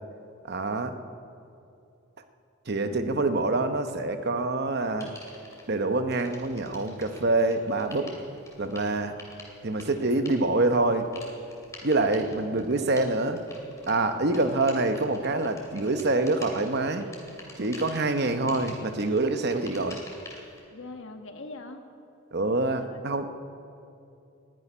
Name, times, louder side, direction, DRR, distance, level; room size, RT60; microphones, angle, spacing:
voice 1, 0.4-1.0 2.7-5.1 5.7-8.1 8.6-9.2 9.6-11.1 11.8-13.4 13.9-17.1 17.6-20.0 22.3-23.3, right 2 dB, 50° right, 8 dB, 0.9 m, -26 dB
voice 2, 2.8-3.2 9.9-10.2 14.3-14.4 20.7-21.8 22.8-23.1, left 2 dB, 60° left, 5 dB, 1.3 m, -43 dB
sound 1, 5.0-5.6 6.1-20.6, left 2 dB, 15° left, 2.5 m, -47 dB
12.5 x 11.5 x 9.9 m, 2.6 s
head